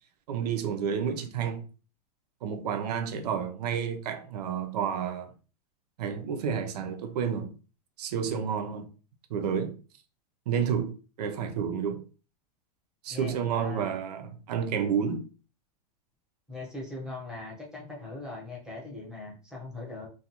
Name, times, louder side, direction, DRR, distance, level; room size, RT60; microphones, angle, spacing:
voice 1, 0.3-1.6 2.4-5.3 6.0-7.6 8.0-8.9 9.3-9.8 10.5-12.0 13.0-15.3, right 7 dB, 80° right, 0.5 m, -30 dB
voice 2, 13.1-14.0 16.5-20.1, left 2 dB, 5° right, 0.8 m, -40 dB
2.4 x 2.3 x 2.8 m
supercardioid pair, 135°, 20 cm